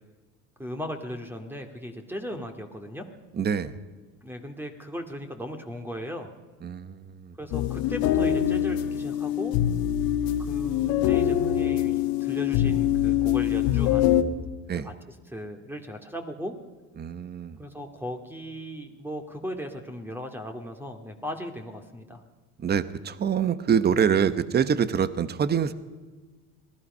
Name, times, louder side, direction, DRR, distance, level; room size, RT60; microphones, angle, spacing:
voice 1, 0.6-3.1 4.2-6.3 7.4-9.6 10.4-14.1 14.8-14.9 15.3-16.6 17.6-22.2, equal, 5° right, 5 dB, 2.3 m, -37 dB
voice 2, 3.3-3.7 6.6-7.3 14.7-14.9 17.0-17.6 22.6-25.7, right 7 dB, 25° right, 13 dB, 1.1 m, -25 dB
sound 1, 7.5-14.2, left 11 dB, 70° left, 1.9 m, -24 dB
26.0 x 18.5 x 5.6 m, 1.3 s
supercardioid pair, 115°, 37 cm